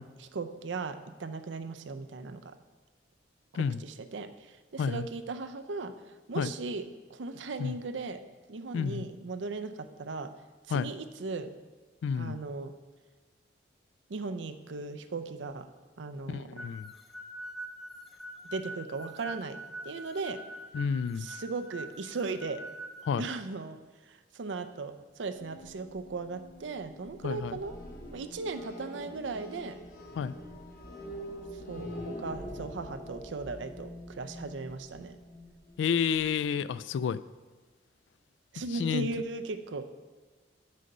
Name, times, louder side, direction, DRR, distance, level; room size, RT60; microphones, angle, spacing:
voice 1, 0.2-2.5 3.5-5.9 6.3-8.2 8.5-10.3 10.7-11.5 12.1-12.7 14.1-15.7 16.0-16.6 18.4-19.6 19.8-20.4 21.2-22.6 23.2-23.8 24.1-27.7 28.1-29.8 31.5-35.2 38.5-39.9, right 3 dB, 85° right, 10 dB, 0.6 m, -37 dB
voice 2, 8.7-9.1 10.7-10.9 12.0-12.4 16.3-16.9 20.7-21.3 23.1-23.2 27.2-27.6 30.2-30.3 35.8-37.2 38.8-39.1, left 6 dB, 85° left, 17 dB, 0.3 m, -30 dB
sound 1, 16.6-23.1, equal, ahead, 0.5 m, -44 dB
sound 2, 25.3-36.3, equal, 55° left, 1.1 m, -45 dB
6.4 x 5.3 x 6.5 m, 1.3 s
head